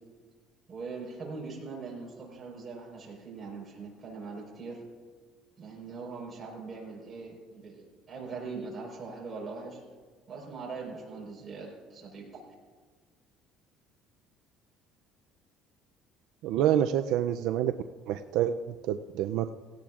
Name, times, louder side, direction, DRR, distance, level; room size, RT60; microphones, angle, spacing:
voice 1, 0.7-4.8 5.6-9.8 10.3-12.4, right 4 dB, 20° right, -3 dB, 4.3 m, -41 dB
voice 2, 16.4-17.7 18.1-18.6 18.8-19.5, right 11 dB, 70° right, 8 dB, 0.4 m, -27 dB
17.5 x 17.0 x 2.5 m, 1.5 s
cardioid pair, 150°, 0 cm